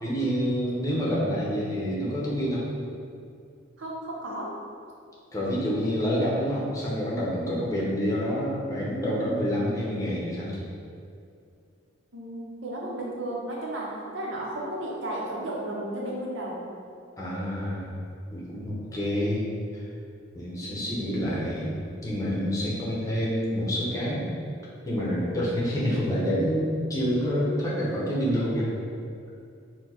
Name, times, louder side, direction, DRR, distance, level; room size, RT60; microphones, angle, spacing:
voice 1, 0.0-2.7 5.3-10.7 17.2-17.9 18.3-19.5 20.3-21.7 22.0-24.3 24.8-28.7, equal, 15° left, -6 dB, 0.8 m, -27 dB
voice 2, 3.8-4.5 12.1-16.6 20.7-21.3 22.7-23.0, right 1 dB, 75° right, -4 dB, 0.9 m, -34 dB
4.3 x 2.3 x 4.3 m, 2.5 s
head